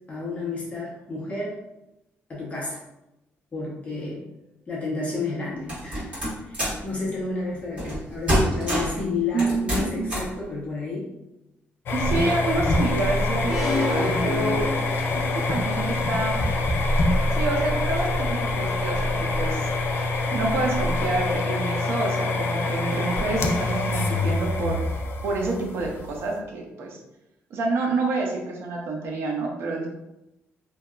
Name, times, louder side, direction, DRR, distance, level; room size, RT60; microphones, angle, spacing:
voice 1, 0.1-1.6 2.3-2.8 3.5-4.2 4.7-6.1 6.4-11.1, left 3 dB, 30° left, -5 dB, 0.7 m, -31 dB
sound 1, 5.7-6.8 7.8-8.0 8.3-9.0 9.4-10.3, equal, 25° right, 1.4 m, -25 dB
voice 2, 9.3-10.2 11.9-14.7 15.3-16.4 17.4-19.7 20.3-24.8 25.2-27.0 27.5-29.9, right 3 dB, 65° right, 1 dB, 0.6 m, -28 dB
sound 2, 11.9-26.4, left 2 dB, 55° left, 0.3 m, -25 dB
sound 3, 13.5-15.5, left 2 dB, 5° right, 0.6 m, -28 dB
2.7 x 2.2 x 2.3 m, 0.92 s
cardioid pair, 125°, 5 cm